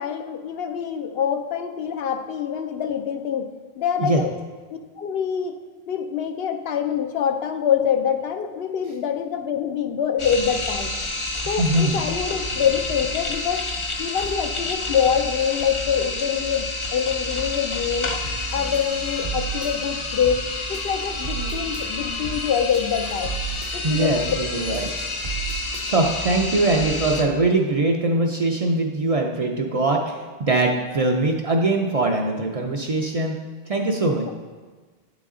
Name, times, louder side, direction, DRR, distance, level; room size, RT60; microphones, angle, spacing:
voice 1, 0.0-3.5 3.8-4.3 4.7-5.5 5.9-11.0 11.5-13.6 14.0-18.1 18.5-20.4 20.7-23.3 23.7-24.2 24.7-24.8, left 8 dB, 75° left, 7 dB, 0.8 m, -25 dB
sound 1, 10.2-27.2, left 2 dB, 40° left, 0.5 m, -29 dB
voice 2, 11.6-12.0 23.8-24.9 25.8-33.4 33.7-34.3, right 2 dB, 50° right, 1 dB, 0.5 m, -22 dB
sound 2, 18.2-18.5 18.7-19.7 20.2-20.5 20.7-21.9 22.2-22.5 22.7-23.7 24.2-24.5 24.7-25.9, right 8 dB, 65° right, 0.9 m, -34 dB
9.1 x 4.0 x 3.7 m, 1.4 s
omnidirectional pair, 1.0 m